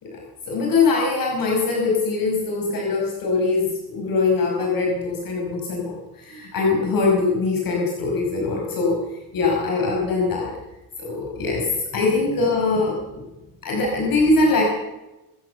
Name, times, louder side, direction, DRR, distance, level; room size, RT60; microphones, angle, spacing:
voice 1, 0.0-10.5 11.0-13.2 13.6-14.6, left 3 dB, 55° left, 0 dB, 5.4 m, -22 dB
26.5 x 15.0 x 6.9 m, 1.0 s
cardioid pair, 125°, 40 cm